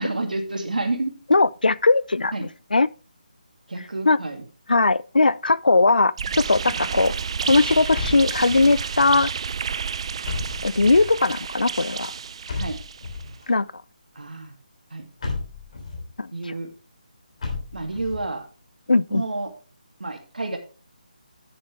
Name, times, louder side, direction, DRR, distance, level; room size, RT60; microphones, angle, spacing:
voice 1, 0.0-1.2 2.3-2.4 3.7-4.4 12.5-12.8 14.2-14.5 14.9-15.1 16.3-16.7 17.7-18.5 19.1-19.5 20.0-20.6, right 2 dB, 75° right, 2.4 m, -29 dB
voice 2, 1.3-2.3 2.7-2.9 4.1-4.2 4.7-7.1 7.5-9.3 10.6-12.1 13.5-13.7 16.2-16.3 18.9-19.2, left 3 dB, 85° left, 0.5 m, -19 dB
sound 1, 6.2-13.2, right 6 dB, 40° right, 0.4 m, -30 dB
sound 2, 7.9-8.9 10.2-11.2 12.5-13.4 15.2-16.1 17.4-18.3, left 3 dB, 50° left, 3.4 m, -32 dB
10.5 x 7.0 x 3.4 m
figure-of-eight pair, 155°, 5 cm